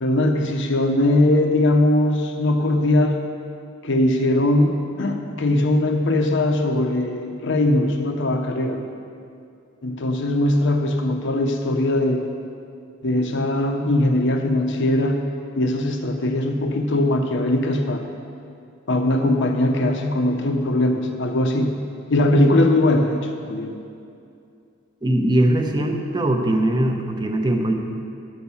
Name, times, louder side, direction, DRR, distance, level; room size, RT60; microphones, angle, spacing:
voice 1, 0.0-3.2 3.8-8.8 9.8-12.2 13.0-15.2 15.6-18.0 18.9-21.7 22.1-23.8, left 1 dB, 60° left, 4 dB, 0.7 m, -20 dB
voice 2, 25.0-27.7, right 1 dB, 20° right, 3 dB, 0.9 m, -21 dB
11.5 x 6.2 x 7.0 m, 2.5 s
head